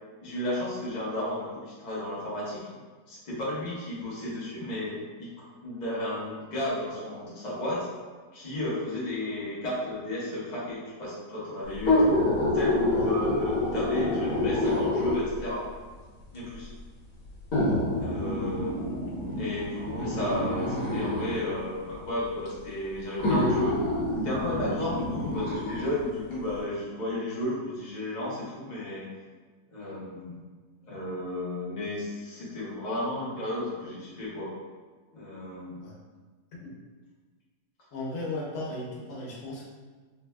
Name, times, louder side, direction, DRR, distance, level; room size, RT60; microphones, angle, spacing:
voice 1, 0.2-2.7 3.1-5.3 5.6-7.9 8.3-12.2 12.5-15.6 16.3-16.7 18.0-23.8 24.2-29.1 29.7-30.3 30.8-34.5 35.1-35.8, left 1 dB, 35° left, -7 dB, 0.9 m, -33 dB
sound 1, 11.7-15.4 16.3-16.4 17.5-21.4 22.5-22.6 23.2-25.9 26.3-26.4, left 1 dB, 60° left, 1.5 m, -27 dB
voice 2, 37.9-39.7, left 2 dB, 80° left, -4 dB, 1.4 m, -36 dB
4.3 x 2.7 x 2.2 m, 1.4 s
omnidirectional pair, 1.7 m